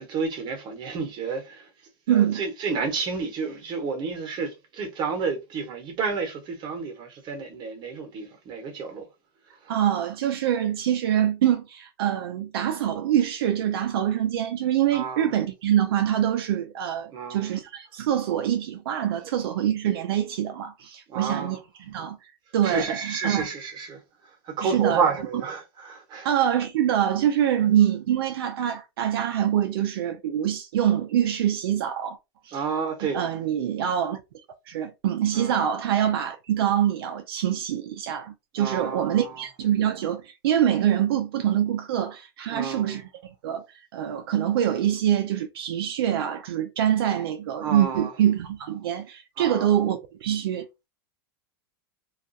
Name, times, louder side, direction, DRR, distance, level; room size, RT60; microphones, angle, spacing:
voice 1, 0.0-1.7 2.1-9.1 9.6-9.7 14.9-15.3 17.1-17.5 21.1-21.6 22.6-26.3 27.6-27.7 32.5-33.2 35.3-35.5 38.6-39.5 42.5-43.0 47.6-48.1 49.4-49.8, right 5 dB, 35° right, 1.0 m, -30 dB
voice 2, 2.1-2.4 9.7-22.2 22.5-23.5 24.6-25.0 26.2-32.2 32.5-32.6 33.1-34.2 34.7-43.6 43.9-50.7, right 10 dB, 80° right, 0.4 m, -25 dB
2.4 x 2.2 x 2.6 m
supercardioid pair, 130°, 12 cm